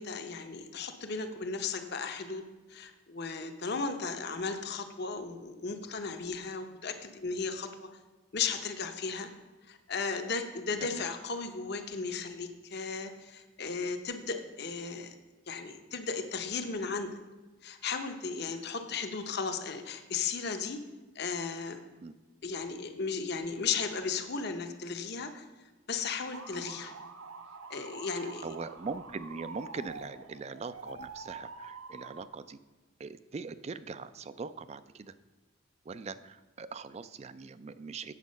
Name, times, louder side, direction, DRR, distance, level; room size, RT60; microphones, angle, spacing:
voice 1, 0.0-2.4 2.7-7.9 8.3-9.3 9.7-15.2 15.5-17.1 17.6-20.8 21.1-21.8 22.4-25.4 25.9-26.9 27.7-28.5, left 5 dB, 50° left, 7 dB, 0.8 m, -35 dB
sound 1, 26.3-32.3, right 4 dB, 90° right, 0.8 m, -46 dB
voice 2, 28.4-32.6 33.0-35.1 35.9-38.1, right 4 dB, 30° right, 14 dB, 0.3 m, -41 dB
8.2 x 7.2 x 5.2 m, 1.2 s
head